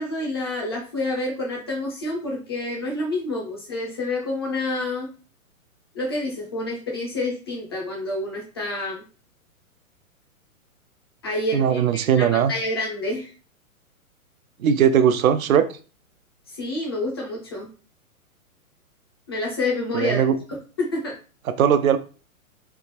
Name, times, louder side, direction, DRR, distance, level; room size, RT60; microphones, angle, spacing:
voice 1, 0.0-5.1 5.9-9.0 11.2-13.3 16.5-17.7 19.3-20.2 20.5-21.1, left 2 dB, 20° left, 0.4 m, -28 dB
voice 2, 11.5-12.5 14.6-15.7 19.9-20.4 21.5-22.0, right 8 dB, 70° right, 0.5 m, -19 dB
3.3 x 2.5 x 2.9 m
figure-of-eight pair, 120°, 43 cm